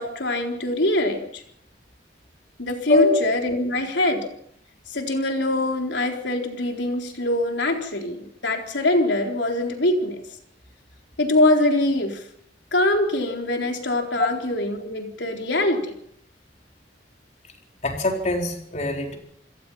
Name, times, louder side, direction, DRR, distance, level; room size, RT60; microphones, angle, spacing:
voice 1, 0.0-1.4 2.6-4.3 4.9-10.2 11.2-12.2 12.7-15.9, left 1 dB, 75° left, 3 dB, 4.0 m, -23 dB
voice 2, 17.8-19.2, left 2 dB, 40° left, 2 dB, 4.4 m, -22 dB
28.0 x 17.5 x 5.6 m, 0.70 s
head